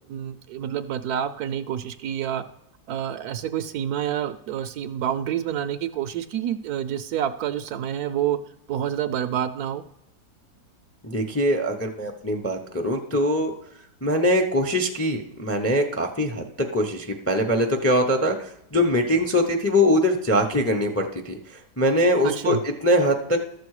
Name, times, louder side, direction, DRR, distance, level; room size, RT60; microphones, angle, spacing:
voice 1, 0.0-2.4 2.9-8.4 8.7-9.8 22.2-22.6, right 10 dB, 70° right, 11 dB, 1.0 m, -28 dB
voice 2, 11.0-13.5 14.0-23.4, equal, 15° left, 3 dB, 0.5 m, -22 dB
12.5 x 6.9 x 4.8 m, 0.76 s
omnidirectional pair, 1.9 m